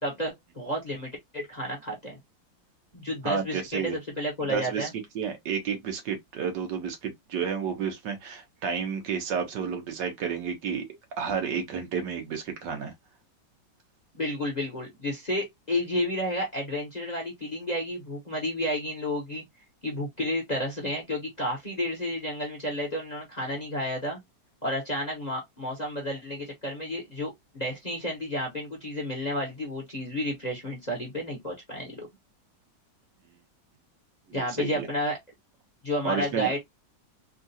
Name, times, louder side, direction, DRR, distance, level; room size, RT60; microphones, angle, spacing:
voice 1, 0.0-2.2 2.9-4.9 14.1-19.4 19.8-24.2 24.6-32.1 34.3-35.2 35.8-36.6, left 1 dB, 30° left, 0.9 m, -31 dB
voice 2, 3.2-4.0 4.5-4.9 5.1-10.9 11.2-12.9 34.4-34.9 36.0-36.6, right 6 dB, 75° right, 1.5 m, -31 dB
3.7 x 2.4 x 2.6 m
omnidirectional pair, 1.9 m